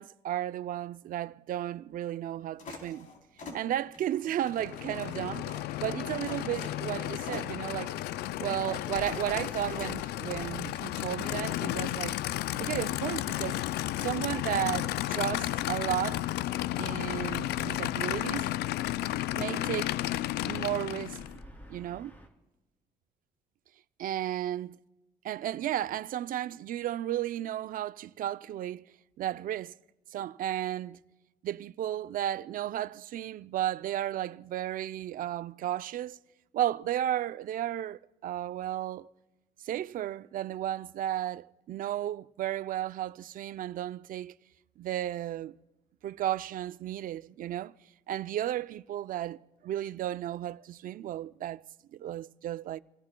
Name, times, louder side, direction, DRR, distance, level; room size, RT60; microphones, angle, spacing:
voice 1, 0.0-3.1 3.5-7.9 8.4-12.2 12.6-13.6 14.0-16.2 16.8-18.5 19.3-19.9 20.5-21.2 21.7-22.2 24.0-24.7 25.2-28.9 29.2-29.7 30.1-31.0 31.4-36.2 36.5-39.1 39.6-44.3 44.8-45.6 46.0-47.7 48.1-51.6 51.9-52.8, right 12 dB, 55° right, 0.5 m, -34 dB
sound 1, 2.6-10.0, left 3 dB, 50° left, 3.5 m, -47 dB
Aircraft / Idling, 4.4-21.4, left 15 dB, 75° left, 0.4 m, -33 dB
Gull seagull / Ocean, 8.9-22.3, equal, 10° left, 3.3 m, -52 dB
28.0 x 17.0 x 2.3 m
cardioid pair, 110°, 17 cm